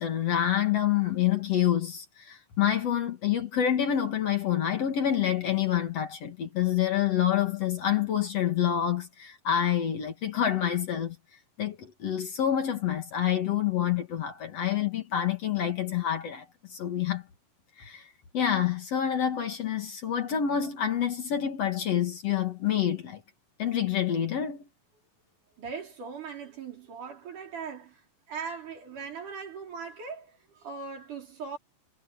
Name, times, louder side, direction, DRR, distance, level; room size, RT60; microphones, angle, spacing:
voice 1, 0.0-11.2 11.6-17.2 17.8-18.1 18.3-23.2 23.6-24.6, left 10 dB, 55° left, 2.5 m, -27 dB
voice 2, 25.6-28.0 28.3-31.6, right 5 dB, 65° right, 5.9 m, -39 dB
omnidirectional pair, 3.9 m